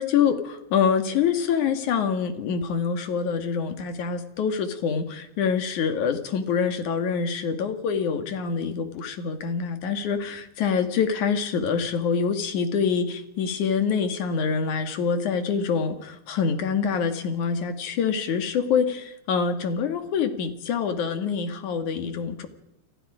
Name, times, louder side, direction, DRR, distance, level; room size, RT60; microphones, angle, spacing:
voice 1, 0.0-22.5, left 6 dB, 65° left, 7 dB, 3.3 m, -25 dB
29.5 x 23.0 x 5.1 m, 0.79 s
omnidirectional pair, 3.8 m